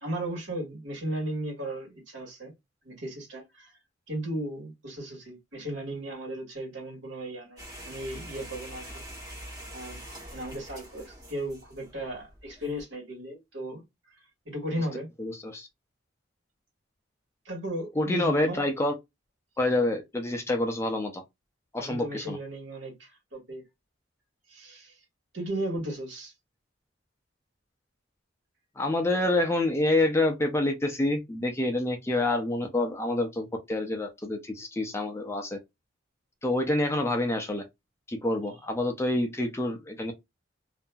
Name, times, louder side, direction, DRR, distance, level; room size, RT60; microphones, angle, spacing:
voice 1, 0.0-2.5 2.8-3.7 4.1-8.8 9.7-10.0 10.3-13.8 14.4-15.1 17.4-18.6 21.8-23.6 24.5-25.0 25.3-26.3, right 1 dB, 70° right, 1.6 m, -35 dB
sound 1, 7.6-12.8, equal, 20° right, 1.2 m, -44 dB
voice 2, 15.2-15.7 18.0-18.9 19.6-21.2 21.7-22.4 28.8-35.6 36.4-37.6 38.1-40.1, left 2 dB, 15° left, 0.4 m, -27 dB
2.8 x 2.5 x 2.2 m
head